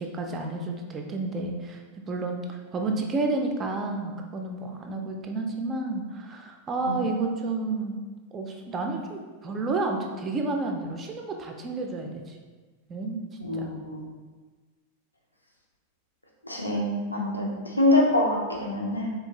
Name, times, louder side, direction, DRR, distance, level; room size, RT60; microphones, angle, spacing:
voice 1, 0.0-1.8 2.1-7.9 8.3-12.4 12.9-13.2 13.5-13.7, right 3 dB, 25° right, 3 dB, 0.4 m, -30 dB
voice 2, 13.4-14.0 16.4-19.1, left 1 dB, 85° left, -1 dB, 0.5 m, -25 dB
3.6 x 2.5 x 2.9 m, 1.4 s
figure-of-eight pair, 90°, 0 cm